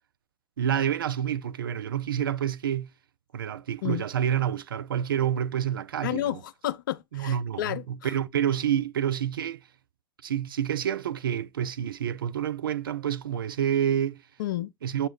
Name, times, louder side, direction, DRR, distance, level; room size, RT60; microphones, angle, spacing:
voice 1, 0.6-2.9 3.3-6.4 7.1-9.6 10.2-14.2 14.8-15.1, right 9 dB, 80° right, 0.4 m, -28 dB
voice 2, 6.0-8.1 14.4-14.7, left 13 dB, 70° left, 0.5 m, -31 dB
7.1 x 2.8 x 4.9 m
figure-of-eight pair, 80°, 11 cm